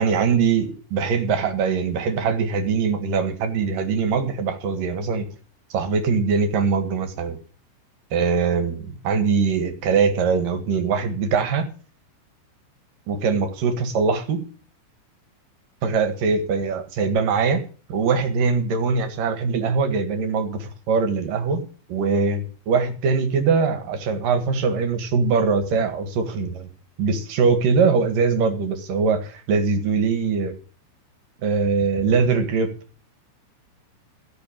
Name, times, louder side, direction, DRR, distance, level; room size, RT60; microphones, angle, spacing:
voice 1, 0.0-5.3 5.7-7.4 8.1-11.7 13.1-14.5 15.8-17.6 17.9-26.7 27.0-30.5 31.4-32.7, right 5 dB, 55° right, 7 dB, 2.8 m, -22 dB
16.0 x 6.1 x 8.8 m, 0.39 s
omnidirectional pair, 5.6 m